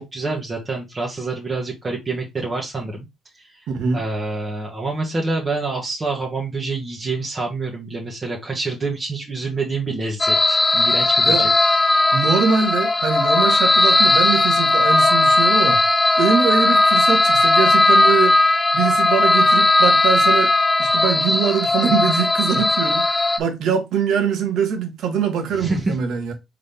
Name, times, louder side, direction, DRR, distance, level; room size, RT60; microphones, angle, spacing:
voice 1, 0.0-3.1 3.9-11.5 25.6-25.9, right 3 dB, 30° right, 1.6 m, -27 dB
voice 2, 3.7-4.1 11.2-11.5 12.1-15.8 16.2-18.5 18.7-20.5 20.8-26.3, right 6 dB, 70° right, 1.4 m, -23 dB
sound 1, 10.2-23.4, left 2 dB, 20° left, 0.6 m, -17 dB
4.0 x 3.7 x 3.4 m
supercardioid pair, 70°, 0 cm